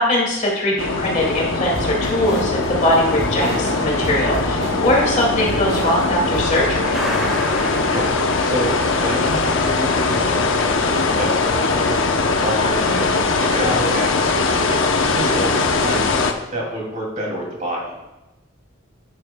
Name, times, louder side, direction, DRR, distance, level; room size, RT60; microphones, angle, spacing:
voice 1, 0.0-7.0, left 1 dB, 35° left, -3 dB, 2.3 m, -21 dB
sound 1, 0.8-16.3, left 3 dB, 75° left, 0.8 m, -21 dB
sound 2, 1.7-6.8, right 1 dB, 60° right, 3.0 m, -30 dB
Truck, 6.9-13.1, equal, 5° right, 1.6 m, -32 dB
voice 2, 7.5-12.0 12.4-16.1 16.5-17.9, equal, 35° right, -3 dB, 2.5 m, -27 dB
11.0 x 9.2 x 2.2 m, 1.0 s
head